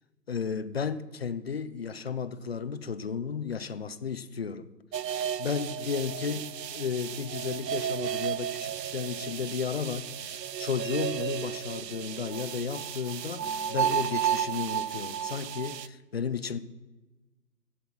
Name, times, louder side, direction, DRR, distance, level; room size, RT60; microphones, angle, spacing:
voice 1, 0.3-4.7 5.4-16.6, left 6 dB, 40° left, 0.4 m, -33 dB
sound 1, 4.9-15.9, right 9 dB, 85° right, 0.6 m, -33 dB
15.5 x 5.7 x 6.0 m
figure-of-eight pair, 145°, 48 cm